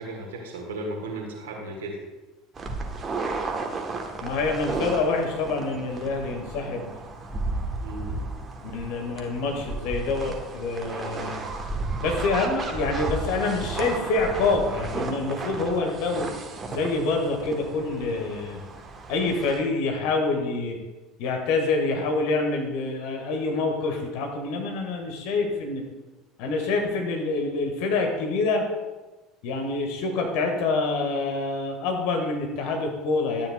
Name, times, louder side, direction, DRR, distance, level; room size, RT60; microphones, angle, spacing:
voice 1, 0.0-2.0 7.8-8.2, right 2 dB, 70° right, 0 dB, 1.6 m, -35 dB
sound 1, 2.6-19.6, right 3 dB, 30° right, 1.1 m, -33 dB
voice 2, 4.2-6.9 8.6-11.4 12.0-16.3 16.7-18.6 19.1-20.8 21.2-25.8 26.4-28.6 29.4-33.5, left 3 dB, 60° left, 2 dB, 1.6 m, -26 dB
12.5 x 8.8 x 2.3 m, 1.2 s
figure-of-eight pair, 65°, 0 cm